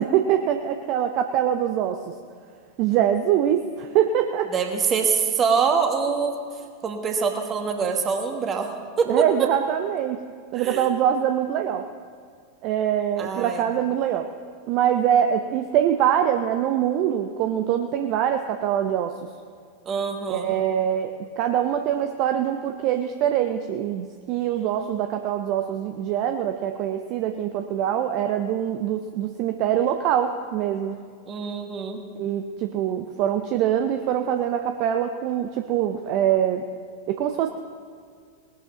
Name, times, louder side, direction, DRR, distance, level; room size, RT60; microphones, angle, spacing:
voice 1, 0.0-2.0 2.8-4.5 9.1-10.2 10.5-11.8 12.6-14.3 14.7-19.1 20.3-31.0 32.2-36.6 37.1-37.5, right 10 dB, 40° right, 7 dB, 0.6 m, -24 dB
voice 2, 4.5-6.4 6.8-8.7 9.0-9.3 10.5-10.9 13.2-13.6 19.8-20.5 31.3-32.0, right 5 dB, 25° right, 4 dB, 1.7 m, -24 dB
19.0 x 11.5 x 3.9 m, 2.1 s
figure-of-eight pair, 90°, 0 cm